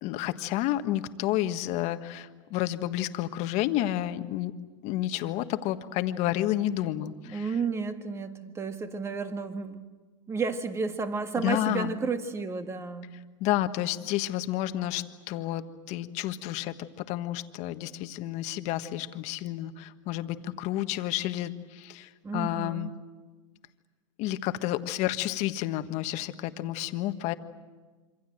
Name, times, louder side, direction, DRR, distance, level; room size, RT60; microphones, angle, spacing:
voice 1, 0.0-4.5 4.8-7.5 11.4-11.9 13.4-22.9 24.2-27.3, left 14 dB, 45° left, 9 dB, 1.5 m, -30 dB
voice 2, 7.3-9.9 10.3-13.2 22.2-22.9, right 4 dB, 15° right, 8 dB, 1.8 m, -32 dB
26.5 x 26.0 x 7.8 m, 1.4 s
hypercardioid pair, 130°, 16 cm